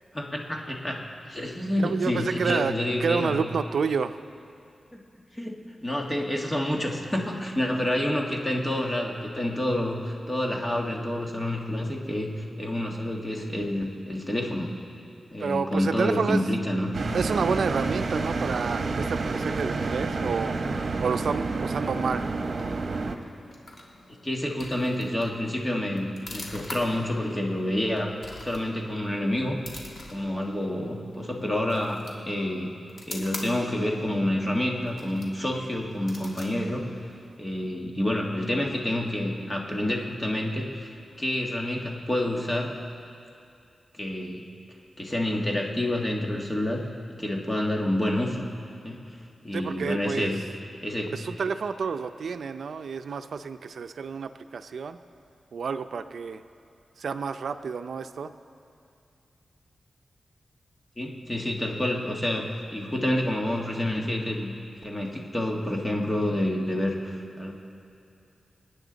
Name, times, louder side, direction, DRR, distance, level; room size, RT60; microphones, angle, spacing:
voice 1, 0.1-3.4 4.9-5.0 5.4-14.7 15.3-17.0 24.2-28.1 28.4-29.6 30.1-32.7 33.1-36.9 37.4-40.9 41.2-42.8 44.0-44.4 45.0-48.5 48.8-49.1 49.4-50.4 50.8-51.1 61.0-62.5 62.7-64.5 64.8-67.5, left 1 dB, 20° left, 0 dB, 1.8 m, -28 dB
voice 2, 1.8-4.2 15.4-16.4 17.1-22.4 49.5-50.3 51.1-55.0 55.5-56.4 57.0-58.3, right 5 dB, 80° right, 9 dB, 0.5 m, -29 dB
sound 1, 16.9-23.2, right 3 dB, 60° right, 1.1 m, -29 dB
sound 2, 22.1-37.6, left 2 dB, 55° left, 2.1 m, -46 dB
27.5 x 9.4 x 4.0 m, 2.5 s
wide cardioid pair, 105°, 0 cm